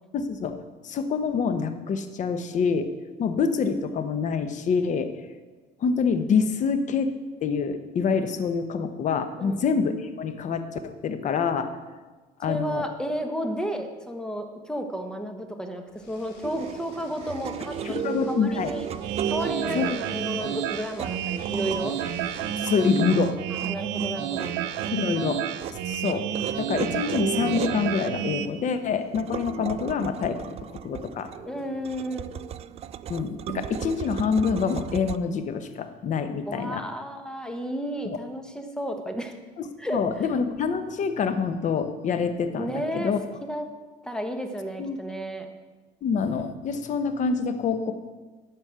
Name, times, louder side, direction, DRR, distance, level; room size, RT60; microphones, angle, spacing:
voice 1, 0.1-2.9 3.2-5.1 5.8-7.1 7.4-11.7 12.4-12.8 17.8-18.7 19.7-20.0 22.6-23.4 24.9-25.4 25.7-26.3 26.6-30.4 30.7-31.3 33.1-36.8 38.0-38.2 39.6-43.2 44.8-45.0 46.0-47.9, left 5 dB, 40° left, 9 dB, 1.0 m, -26 dB
voice 2, 12.5-18.0 18.3-18.8 19.2-22.0 23.6-24.5 31.4-32.3 36.4-39.4 39.8-40.0 42.6-43.1 43.5-43.6 44.0-45.5, equal, 5° left, 5 dB, 1.2 m, -32 dB
sound 1, 15.9-23.0, left 3 dB, 65° left, 2.8 m, -50 dB
sound 2, 16.4-35.2, right 9 dB, 35° right, 0.4 m, -36 dB
sound 3, 19.0-28.5, right 10 dB, 75° right, 0.8 m, -30 dB
12.5 x 5.3 x 8.0 m, 1.3 s
cardioid pair, 130°, 18 cm